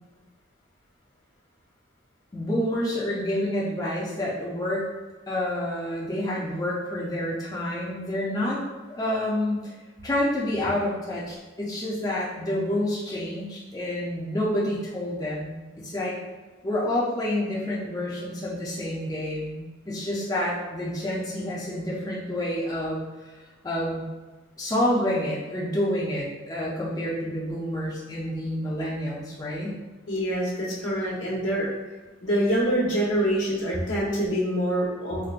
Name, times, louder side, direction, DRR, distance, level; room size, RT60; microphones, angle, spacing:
voice 1, 2.3-4.8 5.3-8.6 8.9-9.7 10.0-16.2 16.6-23.3 23.6-24.0 24.6-29.8, left 1 dB, 20° left, -6 dB, 0.4 m, -28 dB
voice 2, 30.1-31.7 32.2-35.2, right 1 dB, 85° left, -6 dB, 1.1 m, -25 dB
4.5 x 2.1 x 2.4 m, 1.3 s
head